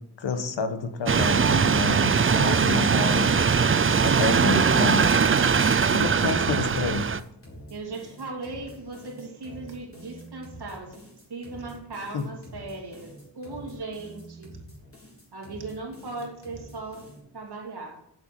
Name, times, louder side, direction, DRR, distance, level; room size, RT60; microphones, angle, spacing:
voice 1, 0.2-3.3 4.0-5.1 5.9-7.1 12.1-12.3, left 4 dB, 90° left, 9 dB, 1.3 m, -29 dB
sound 1, 1.1-7.2, right 6 dB, 30° right, 0.5 m, -21 dB
sound 2, 5.9-17.2, equal, 30° left, 3.8 m, -46 dB
voice 2, 6.1-6.6 7.7-11.0 11.3-14.6 15.3-17.1 17.3-18.0, right 3 dB, 60° right, 1 dB, 2.6 m, -38 dB
8.0 x 7.0 x 7.6 m, 0.78 s
wide cardioid pair, 135°, 43 cm